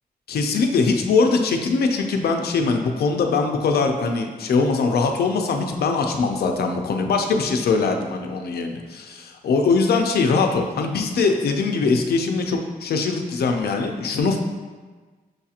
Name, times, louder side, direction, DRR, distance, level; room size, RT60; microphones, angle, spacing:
voice 1, 0.3-14.4, left 4 dB, 85° left, 4 dB, 0.4 m, -22 dB
6.4 x 2.4 x 2.8 m, 1.4 s
wide cardioid pair, 160°, 16 cm